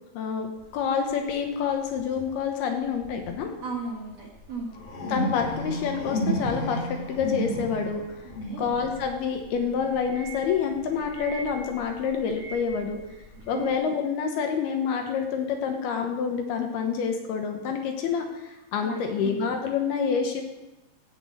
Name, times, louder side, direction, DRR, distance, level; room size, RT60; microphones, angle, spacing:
voice 1, 0.1-0.5 0.7-3.6 5.1-8.0 8.6-13.0 13.5-20.4, left 6 dB, 70° left, 3 dB, 2.8 m, -27 dB
sound 1, 0.6-0.8 1.9-2.3 3.0-3.4 4.1-13.7, equal, 40° left, 3.0 m, -34 dB
voice 2, 3.6-4.7 8.4-8.7 13.3-13.6 18.8-19.3, right 4 dB, 60° right, -2 dB, 1.7 m, -35 dB
15.0 x 6.1 x 7.9 m, 1.0 s
omnidirectional pair, 5.2 m